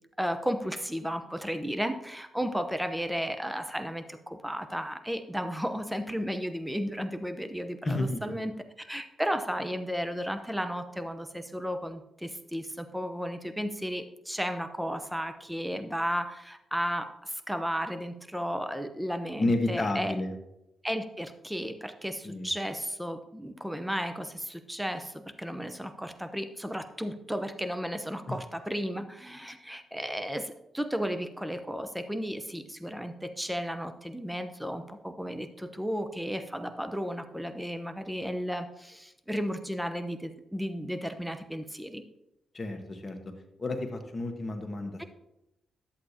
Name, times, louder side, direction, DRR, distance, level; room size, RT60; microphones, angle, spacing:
voice 1, 0.2-20.1 20.8-42.0 45.0-45.1, equal, 5° right, 8 dB, 0.9 m, -34 dB
voice 2, 7.8-8.3 19.4-20.3 22.2-22.5 42.5-43.2 43.6-45.0, left 2 dB, 35° left, 4 dB, 1.5 m, -30 dB
11.0 x 7.9 x 2.9 m, 0.89 s
hypercardioid pair, 45°, 0 cm